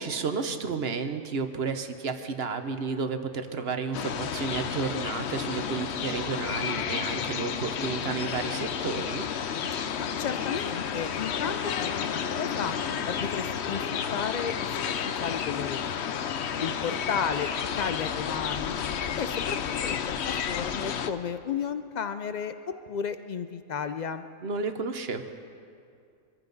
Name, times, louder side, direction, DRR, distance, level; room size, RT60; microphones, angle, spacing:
voice 1, 0.0-9.3 24.4-25.2, right 5 dB, 50° right, 8 dB, 1.0 m, -32 dB
sound 1, 3.9-21.1, left 7 dB, 60° left, 0.9 m, -31 dB
voice 2, 10.0-12.8 13.0-14.8 15.2-16.2 16.6-17.5 17.8-18.9 19.2-22.5 22.9-24.2, left 7 dB, 85° left, 10 dB, 0.3 m, -33 dB
24.0 x 15.0 x 4.0 m, 2.3 s
omnidirectional pair, 1.4 m